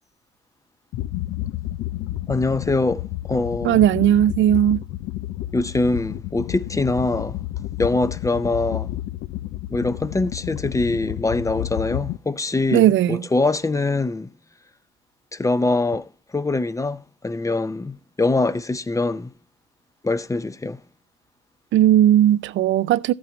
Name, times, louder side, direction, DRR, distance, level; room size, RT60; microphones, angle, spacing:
sound 1, 0.9-12.2, left 15 dB, 85° left, 0.5 m, -31 dB
voice 1, 2.3-3.0 3.3-3.8 5.5-7.4 7.8-8.9 9.7-14.3 15.3-16.0 16.3-19.3 20.0-20.8, left 2 dB, 15° left, 0.6 m, -23 dB
voice 2, 3.6-4.8 12.7-13.3 21.7-23.1, right 12 dB, 75° right, 0.5 m, -17 dB
13.5 x 8.8 x 3.1 m
cardioid pair, 90°, 20 cm